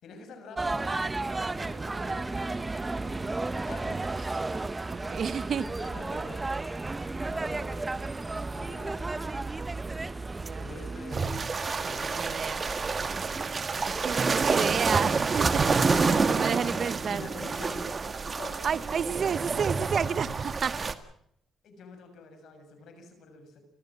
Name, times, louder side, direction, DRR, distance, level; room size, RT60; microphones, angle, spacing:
voice 1, 0.0-4.1 5.8-6.5 7.3-7.9 8.3-9.6 10.6-11.4 11.7-13.3 16.4-18.0 18.3-19.1 21.6-23.6, left 3 dB, 70° left, 7 dB, 6.9 m, -47 dB
sound 1, 0.6-11.5, right 3 dB, 20° right, 1.0 m, -33 dB
voice 2, 4.9-5.7 10.4-10.7 11.8-12.6 14.0-15.6 15.9-17.2 18.6-20.9, right 7 dB, 55° right, 15 dB, 1.0 m, -31 dB
sound 2, 11.1-20.9, right 4 dB, 35° right, 1.8 m, -28 dB
29.5 x 14.5 x 7.5 m, 0.71 s
cardioid pair, 90°, 0 cm